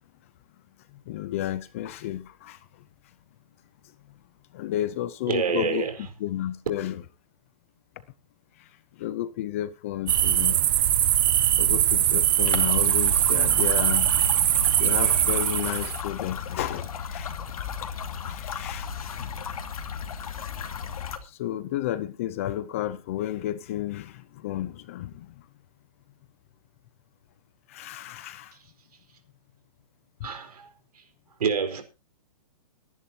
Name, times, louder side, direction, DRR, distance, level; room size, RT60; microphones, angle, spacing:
voice 1, 1.1-2.8 4.5-7.0 8.6-10.6 11.6-14.4 14.8-17.6 18.2-19.6 21.2-25.5 27.7-28.6, left 12 dB, 20° left, 0.6 m, -32 dB
voice 2, 5.3-5.9 30.2-30.6 31.4-31.8, right 6 dB, 75° right, 4.5 m, -26 dB
sound 1, 10.1-16.0, right 11 dB, 35° right, 0.7 m, -22 dB
sound 2, 12.4-21.2, left 7 dB, 65° left, 2.4 m, -35 dB
22.5 x 11.0 x 2.9 m
hypercardioid pair, 175°, 20 cm